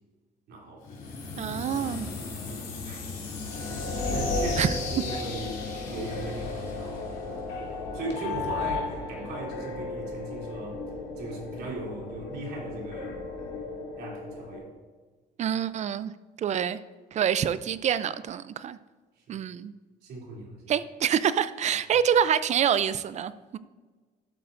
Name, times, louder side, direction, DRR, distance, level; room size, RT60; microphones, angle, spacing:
voice 1, 0.5-0.9 2.5-3.0 3.6-10.8 11.2-13.2 14.0-14.7 15.4-15.5 19.2-19.4 20.0-20.7, right 2 dB, 70° right, -2 dB, 2.9 m, -39 dB
sound 1, 0.8-7.7, left 4 dB, 50° left, 2.8 m, -37 dB
voice 2, 1.4-2.1 4.6-4.7 15.4-16.1 16.4-16.8 17.1-18.8 19.3-19.7 20.7-23.6, right 9 dB, 45° right, 15 dB, 0.5 m, -26 dB
sound 2, 3.2-14.6, left 3 dB, 90° left, 2.0 m, -35 dB
12.5 x 7.6 x 2.6 m, 1.4 s
cardioid pair, 110°, 17 cm